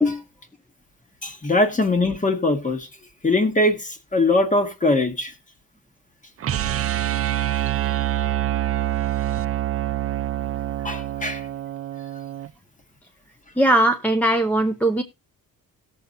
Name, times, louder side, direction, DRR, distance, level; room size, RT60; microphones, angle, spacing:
voice 1, 1.2-2.9 3.2-5.3 10.8-11.4, left 2 dB, 20° left, 1.6 m, -21 dB
sound 1, 6.4-12.5, right 13 dB, 40° right, 0.4 m, -25 dB
voice 2, 13.6-15.0, right 1 dB, 5° left, 0.7 m, -19 dB
18.5 x 7.0 x 2.5 m
wide cardioid pair, 155°, 35 cm